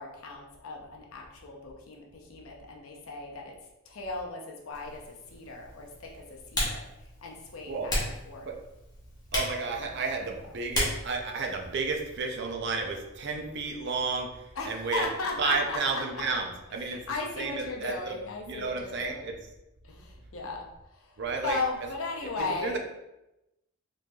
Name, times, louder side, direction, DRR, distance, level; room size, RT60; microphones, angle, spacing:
voice 1, 0.0-3.5 3.9-5.0 5.3-6.8 7.2-8.5 14.6-16.4 16.8-19.3 19.8-20.7 20.9-21.1 21.4-22.8, left 3 dB, 75° left, 0 dB, 0.7 m, -36 dB
Typing, 4.7-12.2, left 1 dB, 20° left, 0.9 m, -36 dB
voice 2, 9.3-15.1 15.4-17.0 17.4-18.2 18.5-19.3 21.2-21.6 22.6-22.8, right 4 dB, 55° right, 3 dB, 0.5 m, -32 dB
4.0 x 3.1 x 2.3 m, 0.92 s
head